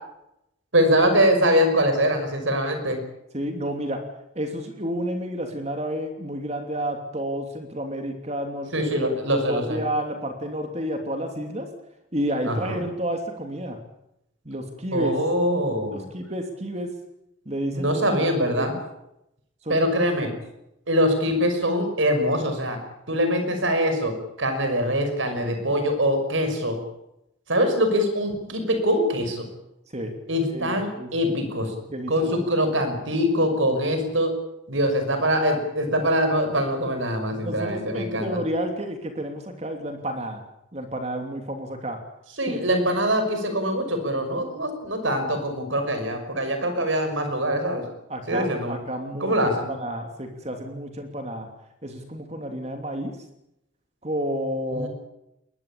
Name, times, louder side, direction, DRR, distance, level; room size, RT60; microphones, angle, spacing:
voice 1, 0.7-3.0 8.7-9.8 12.5-12.8 14.9-16.0 17.7-18.7 19.7-20.3 20.9-22.8 23.1-26.8 27.5-29.5 30.3-31.7 32.1-34.4 34.7-38.4 42.4-47.8 48.3-48.8 49.2-49.7 54.7-54.9, equal, 70° right, 7 dB, 5.8 m, -23 dB
voice 2, 3.3-4.0 4.3-11.7 12.1-13.8 14.4-15.1 15.9-16.9 17.4-18.7 19.6-19.9 20.2-20.4 29.9-30.1 30.5-31.3 31.9-32.3 37.4-40.4 40.7-42.0 42.5-42.6 48.1-51.5 51.8-53.1 54.0-54.9, equal, 30° right, 5 dB, 3.0 m, -30 dB
22.0 x 21.0 x 8.6 m, 0.84 s
head